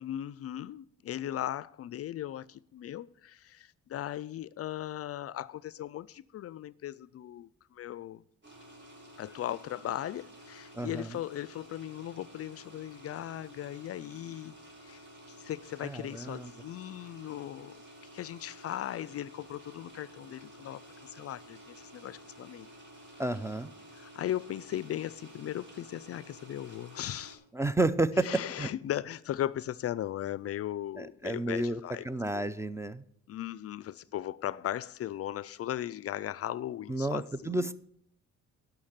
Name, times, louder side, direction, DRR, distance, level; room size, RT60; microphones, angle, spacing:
voice 1, 0.0-8.2 9.2-14.5 14.8-17.8 18.1-22.7 23.9-27.4 28.2-32.1 32.3-32.5 33.3-37.7, left 12 dB, 50° left, 0.4 m, -38 dB
sound 1, 8.4-27.4, equal, 35° right, 3.5 m, -52 dB
voice 2, 10.7-11.2 15.8-16.5 23.2-23.7 27.5-28.7 31.0-33.0 36.9-37.7, right 2 dB, 10° right, 0.5 m, -31 dB
11.5 x 5.9 x 7.3 m
cardioid pair, 90°, 30 cm